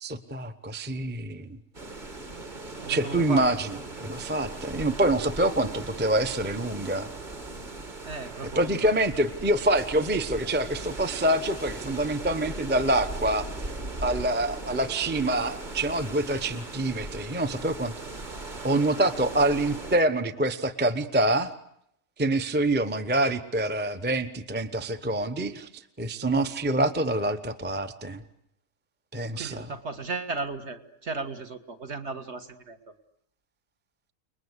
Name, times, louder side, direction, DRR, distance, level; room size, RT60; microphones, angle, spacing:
voice 1, 0.0-1.6 2.9-7.1 8.5-13.5 14.0-17.9 18.6-21.5 22.2-28.2 29.1-29.7, right 1 dB, 10° right, 9 dB, 0.8 m, -26 dB
sound 1, 1.7-20.0, right 2 dB, 30° right, 2.0 m, -38 dB
voice 2, 2.8-3.5 8.0-8.9 29.3-32.8, right 3 dB, 50° right, 5 dB, 2.0 m, -35 dB
30.0 x 21.0 x 8.1 m, 0.75 s
omnidirectional pair, 1.5 m